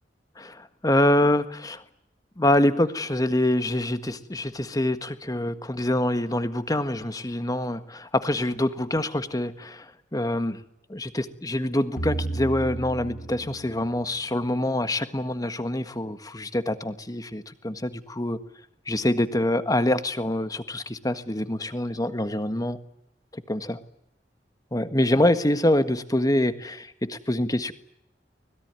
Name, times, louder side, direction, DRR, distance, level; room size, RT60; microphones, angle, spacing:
voice 1, 0.4-1.8 2.4-10.6 10.9-18.4 18.9-22.8 23.3-23.8 24.7-27.7, left 1 dB, 20° left, 10 dB, 1.6 m, -25 dB
sound 1, 12.0-15.1, right 2 dB, 60° left, 2.5 m, -34 dB
24.5 x 21.0 x 9.6 m, 0.77 s
head